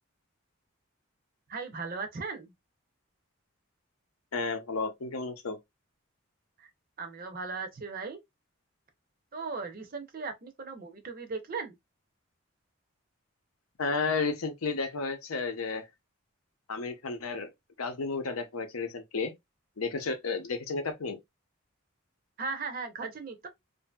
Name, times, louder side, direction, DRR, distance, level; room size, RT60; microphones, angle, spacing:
voice 1, 1.5-2.5 6.6-6.7 7.0-8.2 9.3-11.8 22.4-23.5, right 4 dB, 40° right, 0.6 m, -37 dB
voice 2, 4.3-5.6 13.8-15.8 16.7-17.5 17.8-19.3 19.8-21.2, left 4 dB, 90° left, 0.7 m, -32 dB
2.7 x 2.6 x 2.2 m
head